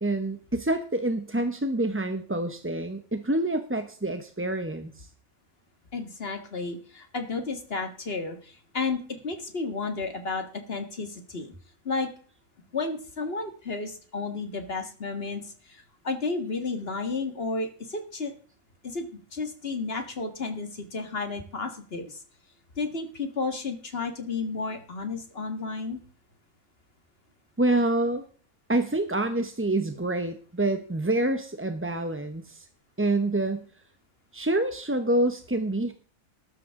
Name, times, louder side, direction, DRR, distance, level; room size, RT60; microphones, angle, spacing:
voice 1, 0.0-5.1 27.6-28.3 28.7-32.7 33.0-33.7 34.3-35.9, right 1 dB, 10° right, 8 dB, 0.6 m, -27 dB
voice 2, 5.9-11.5 11.9-12.1 12.7-18.3 18.8-22.2 22.8-26.0, left 4 dB, 45° left, 7 dB, 2.1 m, -32 dB
13.5 x 12.0 x 3.7 m, 0.43 s
omnidirectional pair, 1.5 m